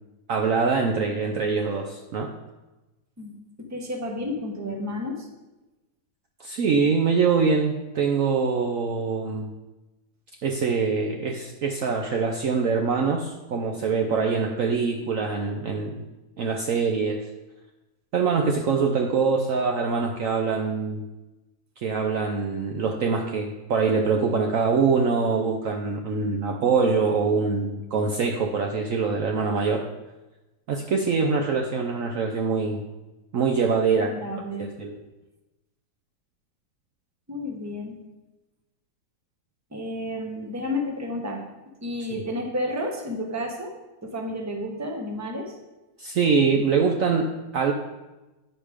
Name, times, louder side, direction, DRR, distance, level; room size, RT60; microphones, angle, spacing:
voice 1, 0.3-2.3 6.4-9.5 10.4-16.0 16.4-17.2 18.1-21.0 21.8-29.8 30.7-32.8 33.3-34.1 34.6-35.0 42.1-42.2 46.0-47.7, right 5 dB, 65° right, 2 dB, 0.9 m, -24 dB
voice 2, 3.2-5.3 34.0-34.7 37.3-38.0 39.7-41.4 41.8-43.7 44.0-45.6, left 1 dB, 10° right, 1 dB, 0.9 m, -31 dB
9.6 x 5.0 x 5.0 m, 1.1 s
omnidirectional pair, 1.8 m